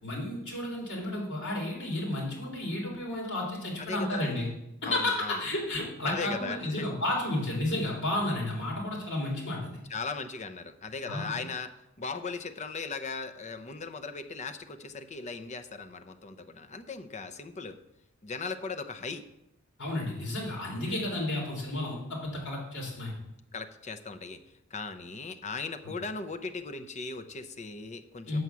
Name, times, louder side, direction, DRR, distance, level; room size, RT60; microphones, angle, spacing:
voice 1, 0.0-4.5 4.9-9.8 11.1-11.3 19.8-23.1 28.2-28.4, left 1 dB, 60° left, -2 dB, 3.5 m, -32 dB
voice 2, 3.8-4.5 4.8-5.4 6.0-6.9 9.9-11.7 12.0-17.8 18.2-19.2 20.8-21.3 23.5-24.4 24.7-28.4, left 4 dB, 35° left, 9 dB, 0.7 m, -38 dB
7.9 x 6.1 x 7.0 m, 0.86 s
head